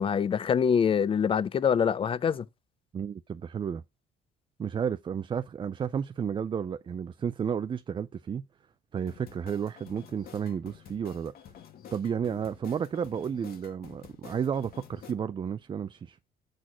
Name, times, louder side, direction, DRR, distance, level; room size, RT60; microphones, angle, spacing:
voice 1, 0.0-2.5, left 7 dB, 30° left, 0.5 m, -25 dB
voice 2, 2.9-3.8 4.6-8.4 8.9-11.3 11.9-16.2, right 7 dB, 30° right, 0.4 m, -32 dB
sound 1, 9.1-15.1, left 8 dB, 60° left, 1.8 m, -50 dB
7.7 x 4.1 x 6.1 m
cardioid pair, 110°, 17 cm